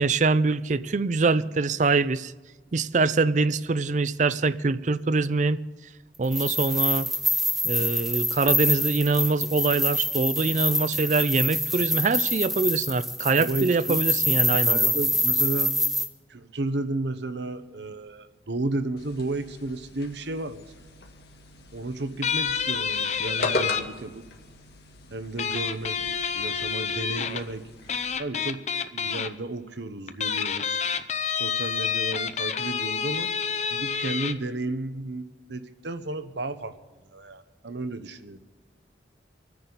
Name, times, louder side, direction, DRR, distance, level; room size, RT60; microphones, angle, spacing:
voice 1, 0.0-2.3 2.7-5.6 6.2-7.1 7.6-14.9, right 3 dB, 40° right, 0.5 m, -24 dB
sound 1, 6.2-16.1, equal, ahead, 1.0 m, -26 dB
voice 2, 13.4-14.0 14.6-15.7 16.3-20.6 21.7-24.2 25.1-27.6 28.2-28.6 28.9-30.8 31.4-33.3 33.7-36.7 37.1-38.4, right 2 dB, 70° right, 1.0 m, -33 dB
sound 2, 19.0-28.2, left 2 dB, 60° left, 1.7 m, -38 dB
sound 3, 22.2-23.8 25.4-27.4 27.9-29.3 30.1-34.3, left 7 dB, 40° left, 0.7 m, -28 dB
26.0 x 10.0 x 4.0 m
head